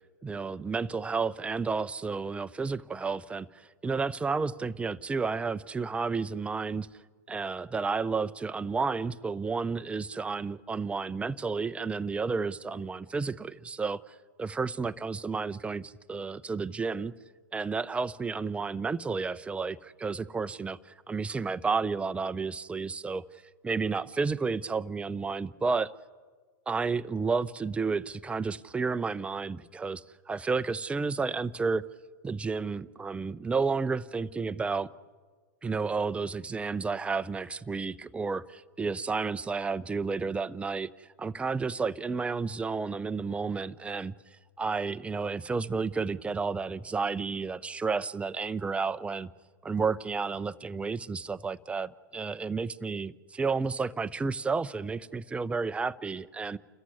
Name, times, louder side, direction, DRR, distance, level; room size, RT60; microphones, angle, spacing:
voice 1, 0.2-6.9 7.3-17.1 17.5-23.2 23.6-25.9 26.7-31.9 32.2-34.9 35.6-40.9 41.2-44.1 44.6-49.3 49.6-56.6, right 4 dB, 10° right, 0.6 m, -31 dB
29.5 x 14.5 x 9.8 m
hypercardioid pair, 110°, 10 cm